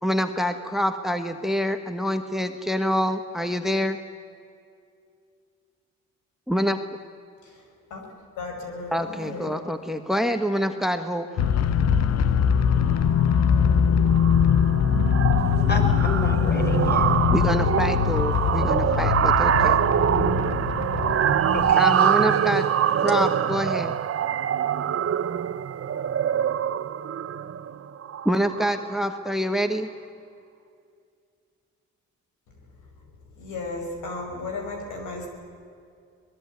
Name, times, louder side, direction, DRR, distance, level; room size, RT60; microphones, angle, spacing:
voice 1, 0.0-4.0 6.5-6.8 8.9-11.3 17.3-19.8 21.8-22.7 23.0-23.9 28.2-29.9, equal, ahead, 8 dB, 1.4 m, -26 dB
voice 2, 8.4-9.5 33.4-35.3, left 3 dB, 80° left, 3 dB, 5.8 m, -34 dB
sound 1, 11.4-21.7, left 8 dB, 60° left, 1.1 m, -22 dB
sound 2, 12.9-13.2 13.5-13.8 14.1-28.9, right 9 dB, 50° right, 1.1 m, -24 dB
voice 3, 15.4-17.2 18.4-18.6 21.5-22.1, left 1 dB, 35° left, 4 dB, 5.0 m, -32 dB
23.0 x 20.5 x 9.5 m, 2.4 s
cardioid pair, 90°, 30 cm